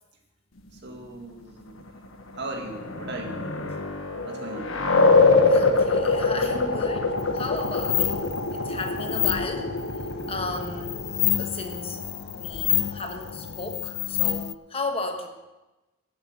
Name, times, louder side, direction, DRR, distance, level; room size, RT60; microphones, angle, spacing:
voice 1, 0.7-1.9 2.3-3.6 4.2-4.8, right 2 dB, 55° right, 2 dB, 2.1 m, -37 dB
sound 1, 2.3-13.7, left 3 dB, 80° left, 1.3 m, -25 dB
voice 2, 5.5-9.7 10.3-11.0 11.4-12.0 12.4-15.3, left 3 dB, 30° left, 5 dB, 1.1 m, -34 dB
sound 2, 7.2-14.5, left 15 dB, 50° left, 0.3 m, -29 dB
12.5 x 8.0 x 8.0 m, 1.1 s
head